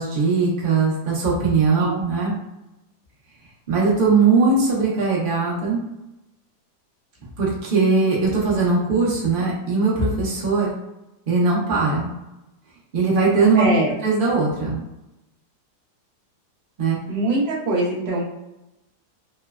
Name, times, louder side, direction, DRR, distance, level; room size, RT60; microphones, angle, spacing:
voice 1, 0.0-2.3 3.7-5.8 7.4-10.7 11.3-12.1 12.9-13.6 14.0-14.8 16.8-17.0, right 4 dB, 75° right, -5 dB, 0.4 m, -20 dB
voice 2, 13.5-13.9 17.1-18.2, right 2 dB, 50° right, -5 dB, 0.8 m, -22 dB
3.1 x 2.0 x 2.3 m, 0.95 s
omnidirectional pair, 1.9 m